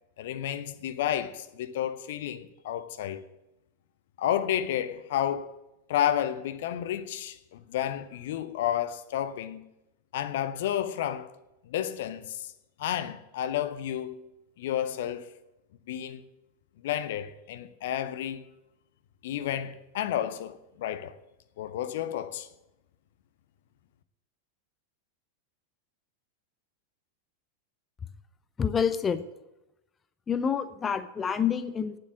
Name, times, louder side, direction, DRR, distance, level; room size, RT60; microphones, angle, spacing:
voice 1, 0.2-3.2 4.2-5.6 5.9-9.7 10.1-11.3 11.6-12.5 12.8-14.2 14.6-15.3 15.9-16.2 16.8-18.5 19.2-21.1 21.6-22.5, left 10 dB, 55° left, 0.6 m, -31 dB
voice 2, 28.6-29.2 30.3-32.0, left 7 dB, 20° left, 0.6 m, -27 dB
9.5 x 7.6 x 8.9 m
figure-of-eight pair, 90°, 0 cm